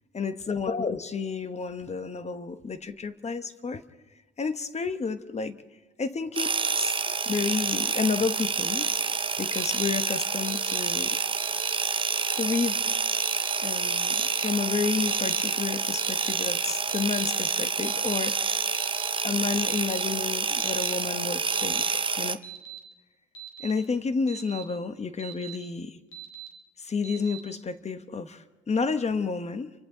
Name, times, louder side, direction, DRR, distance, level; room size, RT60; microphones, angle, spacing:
voice 1, 0.1-3.8 4.4-5.6 6.0-11.2 12.4-12.9 13.6-18.6 19.2-22.4 23.6-26.0 26.8-29.7, left 5 dB, 35° left, 10 dB, 1.2 m, -31 dB
sound 1, 6.3-22.4, right 5 dB, 25° right, 0.8 m, -28 dB
Alarm, 9.5-9.9 10.4-10.8 11.4-11.7 12.3-12.6 13.2-13.6 14.1-14.5 15.1-15.4 16.0-16.3 16.9-17.3 17.8-18.2 18.7-19.1 19.7-20.0 20.6-20.9 21.5-21.9 22.4-22.8 23.3-23.7 24.3-24.6 25.2-25.6 26.1-26.5 27.0-27.4, right 11 dB, 85° left, 4.2 m, -41 dB
30.0 x 24.5 x 3.9 m, 1.2 s
cardioid pair, 90°, 20 cm